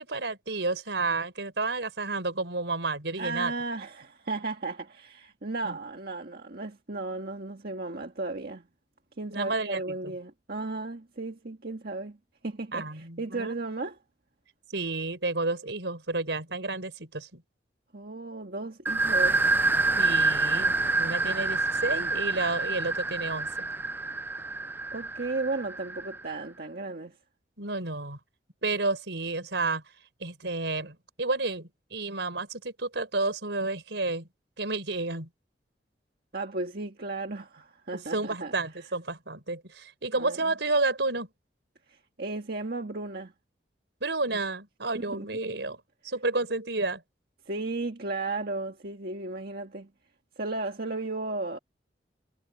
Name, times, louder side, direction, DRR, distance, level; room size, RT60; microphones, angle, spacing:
voice 1, 0.0-3.5 5.6-5.8 9.3-10.1 12.7-13.6 14.7-17.4 20.0-23.7 27.6-28.2 28.6-29.8 30.2-34.3 34.6-35.3 38.1-41.3 44.0-47.0, right 3 dB, 80° right, 4.5 m, -31 dB
voice 2, 3.2-8.7 9.2-12.2 12.4-14.0 17.9-19.4 24.9-27.2 36.3-38.5 40.2-40.5 41.9-43.3 44.9-45.3 47.4-49.9 50.4-51.6, right 3 dB, 60° right, 1.7 m, -35 dB
sound 1, 18.9-26.3, right 3 dB, 10° right, 0.4 m, -27 dB
head